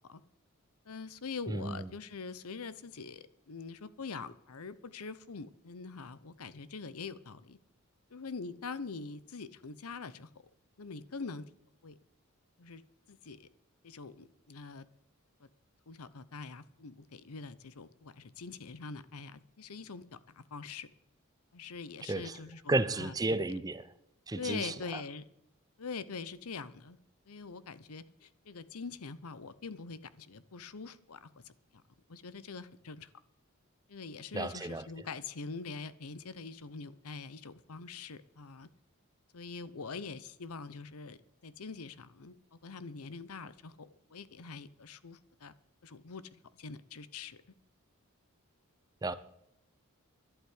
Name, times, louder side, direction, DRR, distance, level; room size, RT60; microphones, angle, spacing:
voice 1, 0.9-7.6 8.1-10.3 10.8-11.5 11.8-12.0 12.6-12.8 13.1-13.5 13.8-14.9 15.9-20.0 20.3-20.9 21.5-23.1 23.5-23.6 24.3-25.2 25.8-27.0 27.3-31.8 32.1-33.1 33.9-38.7 39.3-45.5 45.8-47.4, left 4 dB, 85° left, 0.8 m, -44 dB
voice 2, 1.5-1.9 22.1-22.4 22.7-23.8 24.3-25.0 34.3-34.8 49.0-49.1, right 2 dB, 15° right, 0.5 m, -33 dB
11.5 x 8.2 x 9.7 m
head